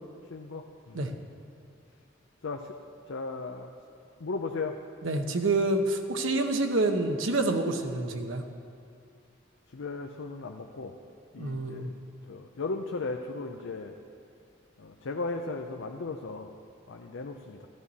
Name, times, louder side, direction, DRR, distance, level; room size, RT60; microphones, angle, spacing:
voice 1, 0.3-1.2 2.4-2.7 3.1-3.7 4.2-4.8 9.7-10.9 11.3-11.9 12.3-14.0 14.8-16.5 16.9-17.7, left 3 dB, 80° left, 3 dB, 0.6 m, -36 dB
voice 2, 5.0-8.4 11.4-11.9, right 2 dB, 85° right, 5 dB, 0.9 m, -27 dB
13.5 x 12.5 x 4.2 m, 2.4 s
head